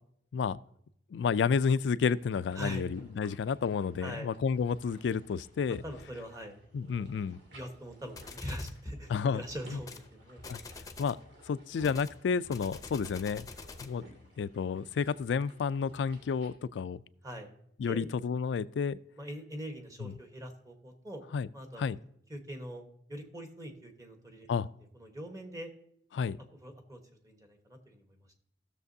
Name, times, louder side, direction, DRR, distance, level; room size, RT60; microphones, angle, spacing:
voice 1, 1.1-5.8 6.7-7.4 9.1-9.4 9.7-9.8 10.5-10.6 11.0-11.2 11.5-13.5 13.8-14.0 14.4-17.0 17.8-19.0 20.0-20.1 21.3-21.5 21.8-22.0 24.5-24.7 26.1-26.4, left 6 dB, 85° left, 0.3 m, -30 dB
sound 1, 2.1-16.5, equal, 85° right, 2.1 m, -57 dB
voice 2, 4.0-4.3 5.7-6.6 7.0-7.1 7.5-10.4 17.2-17.5 17.9-18.1 19.2-21.2 21.5-22.0 22.3-22.8 23.1-24.5 24.9-25.7 26.2-26.3 26.6-28.1, equal, 20° right, 1.2 m, -42 dB
sound 2, 8.2-8.8 9.8-10.1 10.4-11.2 11.8-14.0, left 3 dB, 20° left, 0.6 m, -46 dB
16.5 x 6.7 x 2.7 m
head